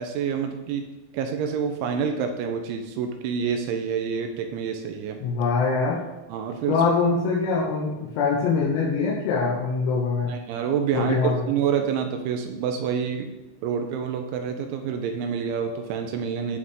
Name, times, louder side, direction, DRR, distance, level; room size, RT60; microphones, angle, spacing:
voice 1, 0.0-5.2 6.3-6.8 10.3-13.3 13.6-16.6, right 7 dB, 80° right, 5 dB, 2.9 m, -27 dB
voice 2, 5.2-6.0 6.7-10.3 10.9-11.5, left 4 dB, 85° left, -6 dB, 4.2 m, -23 dB
16.5 x 5.7 x 3.7 m, 1.0 s
omnidirectional pair, 6.0 m